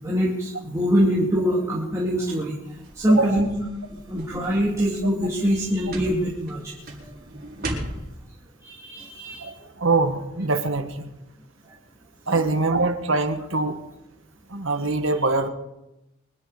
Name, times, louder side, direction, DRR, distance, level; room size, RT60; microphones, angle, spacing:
voice 1, 0.0-2.5 2.9-3.5 3.9-6.8 7.0-7.1 7.6-7.7 8.6-9.5, equal, 15° right, -5 dB, 2.6 m, -24 dB
sound 1, 2.6-8.1, right 1 dB, 45° right, 4.7 m, -37 dB
voice 2, 3.1-3.5 9.4-11.1 12.3-13.8 14.5-15.5, right 3 dB, 65° right, 7 dB, 1.6 m, -23 dB
24.5 x 11.0 x 5.0 m, 0.92 s
head